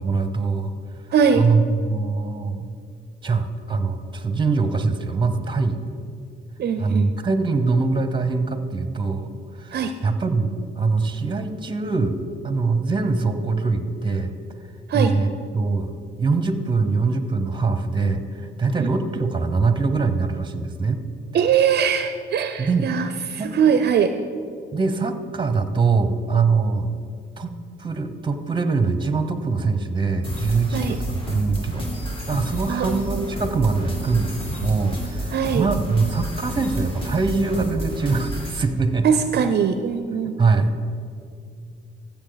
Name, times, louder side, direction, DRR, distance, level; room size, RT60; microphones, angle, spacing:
voice 1, 0.0-0.7 1.3-2.6 3.2-5.8 6.8-9.3 9.6-12.2 12.4-14.3 14.9-15.9 16.2-21.0 22.6-22.9 23.4-23.5 24.7-26.9 27.4-27.5 27.8-39.1 40.4-40.8, right 4 dB, 25° right, 9 dB, 0.9 m, -23 dB
voice 2, 1.1-1.4 6.6-7.1 9.7-9.9 14.9-15.1 18.8-18.9 21.3-24.1 30.7-31.0 32.7-33.1 35.3-35.7 39.0-40.4, right 7 dB, 55° right, 9 dB, 0.5 m, -21 dB
sound 1, 30.2-38.6, equal, 25° left, 2.4 m, -30 dB
15.0 x 7.2 x 4.0 m, 2.3 s
cardioid pair, 90°, 20 cm